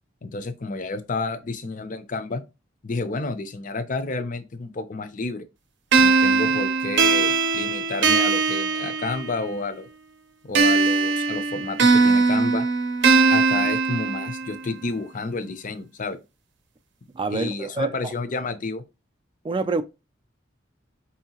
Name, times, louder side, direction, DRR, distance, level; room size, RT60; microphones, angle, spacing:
voice 1, 0.2-2.4 2.8-5.4 6.0-9.9 10.4-12.7 13.3-16.2 17.3-18.8, left 3 dB, 45° left, 0.5 m, -30 dB
sound 1, 5.9-9.5 10.6-14.6, right 4 dB, 65° right, 0.6 m, -20 dB
voice 2, 17.1-18.1 19.4-19.8, right 3 dB, 25° right, 0.3 m, -26 dB
4.4 x 2.8 x 2.8 m
head